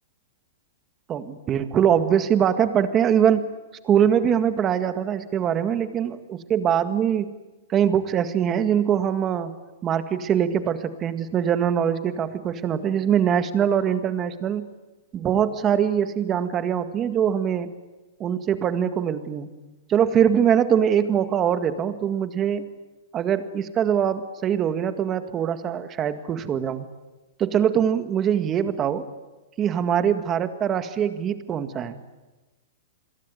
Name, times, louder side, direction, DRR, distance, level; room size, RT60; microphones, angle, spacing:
voice 1, 1.1-3.5 3.8-7.3 7.7-9.5 9.8-14.7 15.1-17.7 18.2-19.5 19.9-22.6 23.1-26.9 27.4-29.1 29.6-32.0, right 8 dB, 20° right, 9 dB, 1.8 m, -23 dB
28.0 x 22.0 x 9.3 m, 1.1 s
hypercardioid pair, 155°, 0 cm